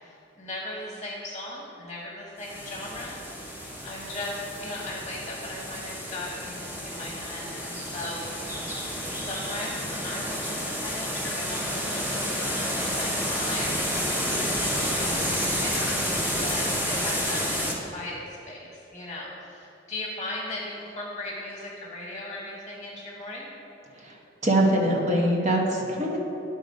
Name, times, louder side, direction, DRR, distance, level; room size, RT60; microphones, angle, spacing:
voice 1, 0.0-3.2 3.8-8.3 9.1-13.7 14.3-23.5, left 1 dB, 20° left, -4 dB, 1.2 m, -38 dB
sound 1, 2.4-17.7, equal, 10° right, 1.0 m, -30 dB
voice 2, 24.4-26.2, right 1 dB, 40° right, -1 dB, 1.2 m, -23 dB
11.0 x 4.0 x 5.2 m, 2.8 s
head